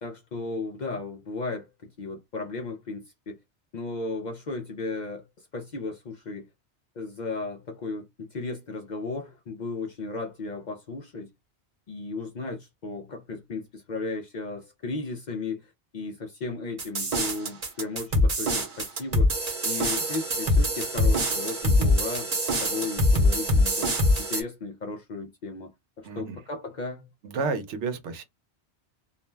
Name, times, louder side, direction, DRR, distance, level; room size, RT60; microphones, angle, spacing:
voice 1, 0.0-1.7 2.0-3.4 3.7-5.3 5.5-6.5 7.0-11.3 11.9-19.3 19.6-22.3 22.6-25.7 26.0-27.1, left 3 dB, 55° left, 0.5 m, -35 dB
sound 1, 16.8-24.4, left 1 dB, 40° right, 0.8 m, -24 dB
voice 2, 26.0-26.4 27.2-28.2, right 4 dB, 85° right, 0.9 m, -31 dB
2.4 x 2.1 x 3.2 m
omnidirectional pair, 1.2 m